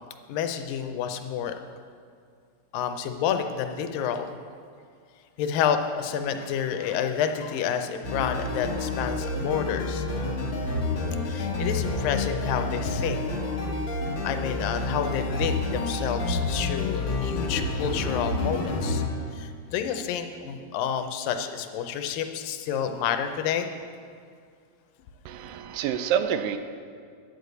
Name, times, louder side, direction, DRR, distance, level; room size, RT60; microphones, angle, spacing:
voice 1, 0.3-1.6 2.7-4.3 5.4-10.1 11.2-13.8 14.2-19.0 19.3-23.7, left 8 dB, 85° left, 7 dB, 2.4 m, -29 dB
sound 1, 8.0-19.1, left 2 dB, 65° left, 1.2 m, -29 dB
voice 2, 25.3-26.6, right 9 dB, 85° right, 10 dB, 2.3 m, -27 dB
10.0 x 6.7 x 7.9 m, 2.2 s
omnidirectional pair, 4.0 m